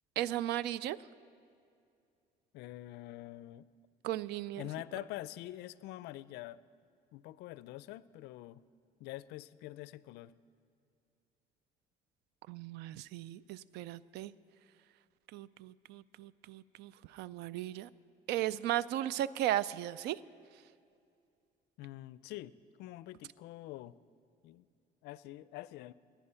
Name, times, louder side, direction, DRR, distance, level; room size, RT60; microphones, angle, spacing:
voice 1, 0.2-1.0 4.0-4.6 12.5-14.3 15.3-17.9 18.3-20.2, right 13 dB, 80° right, 19 dB, 0.4 m, -36 dB
voice 2, 2.5-3.7 4.6-6.6 7.1-8.6 9.0-10.3 21.8-24.0 24.4-24.7 25.0-25.9, left 15 dB, 85° left, 18 dB, 0.4 m, -45 dB
18.5 x 10.5 x 5.6 m, 2.4 s
cardioid pair, 110°, 17 cm